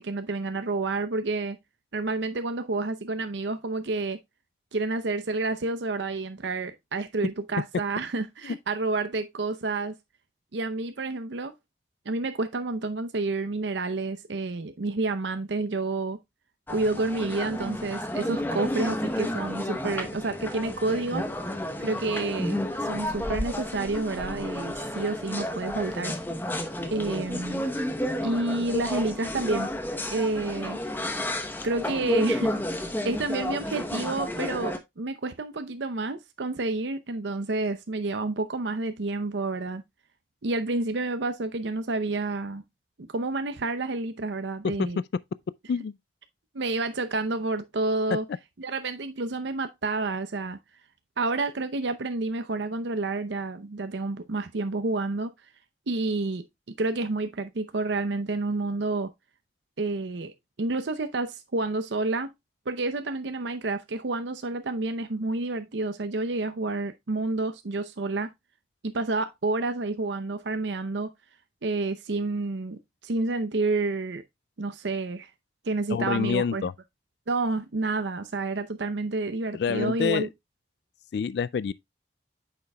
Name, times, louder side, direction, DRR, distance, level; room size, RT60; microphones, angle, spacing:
voice 1, 0.0-1.6 1.9-4.2 4.7-9.9 10.5-11.5 12.1-16.2 16.7-21.3 21.8-26.1 26.9-27.6 28.2-29.7 30.1-30.8 31.6-32.5 33.0-39.8 40.4-42.6 43.0-45.0 46.5-48.2 48.6-50.6 51.2-55.3 55.9-59.1 59.8-60.3 60.6-62.3 62.7-68.3 68.8-71.1 71.6-74.2 74.6-75.3 75.6-76.6 77.3-80.3, right 3 dB, 80° right, 0.7 m, -29 dB
sound 1, 16.7-34.8, left 1 dB, 10° left, 0.9 m, -31 dB
voice 2, 75.9-76.7 79.5-80.3 81.1-81.7, left 6 dB, 65° left, 0.3 m, -27 dB
8.8 x 6.7 x 2.2 m
head